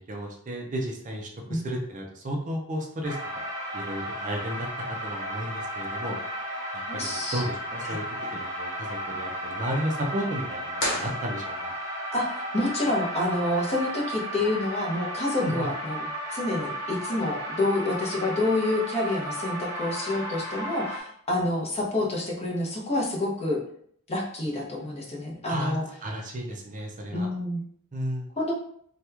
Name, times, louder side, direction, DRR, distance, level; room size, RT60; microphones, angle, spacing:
voice 1, 0.0-3.2 3.7-4.7 5.0-6.2 6.9-8.0 8.3-11.7 15.4-15.5 25.5-25.8 26.0-27.3 27.9-28.3, equal, 35° right, 1 dB, 0.5 m, -33 dB
sound 1, 3.0-21.0, equal, 15° right, 1.0 m, -34 dB
voice 2, 6.9-7.4 7.8-8.0 12.1-23.6 24.1-25.8 27.1-27.6 28.4-28.5, left 2 dB, 30° left, -2 dB, 0.7 m, -28 dB
sound 2, 10.7-11.9, left 1 dB, 65° left, 1.3 m, -32 dB
2.9 x 2.3 x 3.3 m, 0.63 s
head